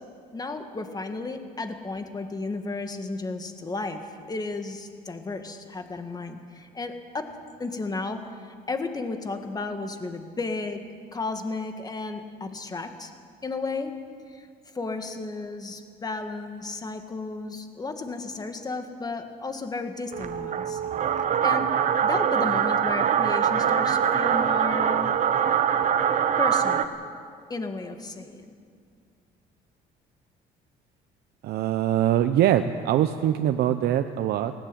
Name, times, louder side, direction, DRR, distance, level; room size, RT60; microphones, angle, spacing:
voice 1, 0.3-7.3 7.6-10.8 11.1-13.1 13.4-13.9 14.3-14.5 14.7-20.8 21.2-21.7 22.0-25.2 26.4-26.9 27.5-28.5, left 3 dB, 20° left, 6 dB, 1.9 m, -33 dB
sound 1, 20.1-26.8, right 8 dB, 45° right, 1.1 m, -23 dB
voice 2, 31.4-34.5, right 11 dB, 70° right, 9 dB, 0.8 m, -23 dB
18.0 x 16.0 x 9.2 m, 2.2 s
cardioid pair, 110°, 17 cm